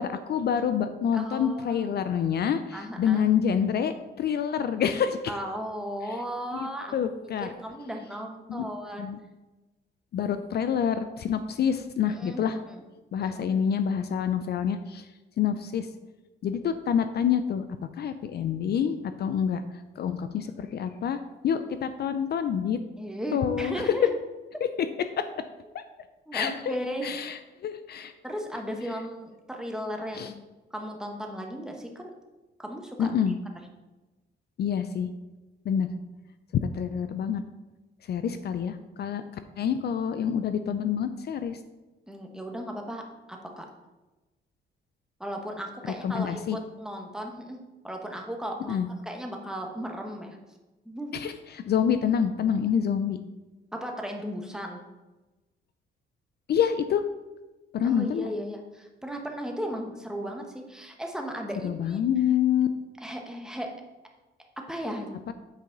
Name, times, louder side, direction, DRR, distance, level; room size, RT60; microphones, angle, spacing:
voice 1, 0.0-5.2 6.5-7.5 8.5-8.7 9.0-9.2 10.1-12.6 13.1-15.1 15.4-15.9 16.4-17.6 18.0-19.6 20.0-21.2 21.4-22.8 23.3-23.9 25.2-25.4 25.7-25.8 26.3-26.5 27.0-28.1 30.1-30.3 33.0-33.3 34.6-35.1 35.7-35.9 36.6-37.4 38.1-39.2 39.6-41.6 46.0-46.6 48.7-48.9 51.1-53.2 56.5-57.1 57.7-58.3 61.6-62.7 65.3-65.4, left 8 dB, 55° left, 10 dB, 0.5 m, -27 dB
voice 2, 1.1-1.8 2.7-3.2 5.3-6.9 7.4-9.1 12.1-12.8 13.2-13.3 23.0-24.1 26.3-27.1 28.2-30.3 30.7-32.1 32.6-33.1 33.6-33.7 42.1-43.0 43.3-43.7 45.2-47.6 47.8-50.4 50.8-51.2 53.7-54.8 57.8-62.0 63.0-63.7 64.6-65.2, equal, 5° right, 2 dB, 1.2 m, -36 dB
8.2 x 4.8 x 3.9 m, 1.1 s
cardioid pair, 90°, 20 cm